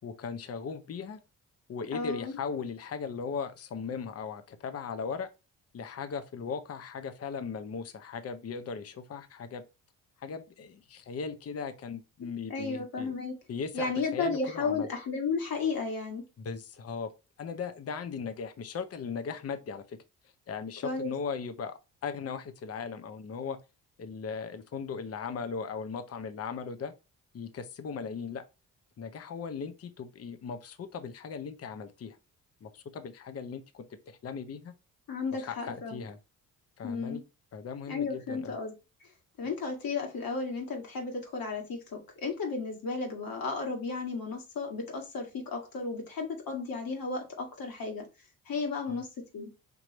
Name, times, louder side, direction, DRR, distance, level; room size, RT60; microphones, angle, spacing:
voice 1, 0.0-1.2 1.7-5.3 5.7-9.6 10.2-13.1 13.5-14.9 16.4-17.1 17.4-20.0 20.5-23.6 24.0-26.9 27.3-28.4 29.0-32.2 32.6-34.7 35.3-36.2 36.8-37.2 37.5-38.6 48.9-49.0, left 5 dB, 35° left, 0.7 m, -38 dB
voice 2, 1.9-2.4 12.5-13.4 13.7-16.2 20.8-21.1 35.1-36.0 36.8-37.2 37.9-38.7 39.4-48.1 48.5-49.1 49.3-49.5, left 4 dB, 55° left, 2.0 m, -33 dB
5.3 x 3.0 x 3.0 m
hypercardioid pair, 50°, 41 cm